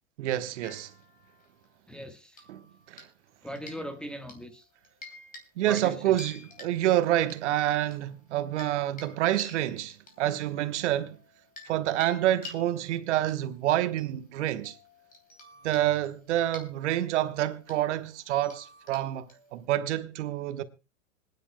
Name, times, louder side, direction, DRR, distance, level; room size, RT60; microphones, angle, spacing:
voice 1, 0.2-0.9 2.5-3.1 5.6-11.2 11.6-14.8 15.6-20.6, right 13 dB, 60° right, 1.2 m, -28 dB
sound 1, 0.6-1.7 2.3-3.3 3.6-4.4 4.8-5.4 5.7-5.9 6.2-7.4 7.9-11.7 12.0-19.7, left 3 dB, 20° left, 3.1 m, -50 dB
voice 2, 1.9-2.4 3.4-4.6 5.7-6.2, equal, ahead, 1.3 m, -39 dB
25.5 x 9.9 x 2.2 m
hypercardioid pair, 95°, 39 cm